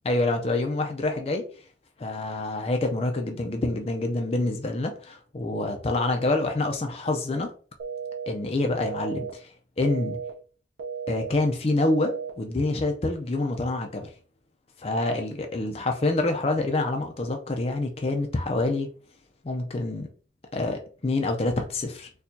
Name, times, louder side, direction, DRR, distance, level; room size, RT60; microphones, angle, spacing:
voice 1, 0.1-1.4 2.0-7.5 8.3-9.5 9.8-10.2 11.1-14.1 14.8-18.9 19.4-20.1 20.5-22.1, left 2 dB, 30° left, 0.4 m, -27 dB
sound 1, 7.8-8.3 8.8-9.3 9.8-10.3 10.8-11.3 11.8-12.3, right 6 dB, 85° right, 0.7 m, -34 dB
4.3 x 2.3 x 2.6 m
head